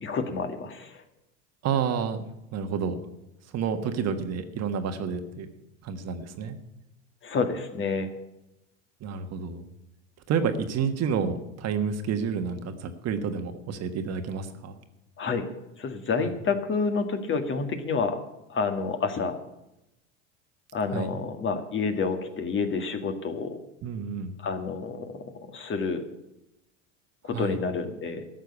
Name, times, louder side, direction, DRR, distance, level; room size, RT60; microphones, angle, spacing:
voice 1, 0.0-1.0 7.2-8.1 15.2-15.5 15.8-18.2 18.5-19.4 20.7-23.6 24.4-26.0 27.2-28.2, left 4 dB, 30° left, 7 dB, 1.8 m, -29 dB
voice 2, 1.6-2.2 2.5-3.0 3.5-5.5 5.8-6.5 9.0-9.6 10.3-14.7 16.2-16.3 20.9-21.1 23.8-24.3 27.3-27.6, right 6 dB, 45° right, 8 dB, 1.5 m, -29 dB
13.0 x 6.6 x 9.8 m, 0.90 s
hypercardioid pair, 95°, 37 cm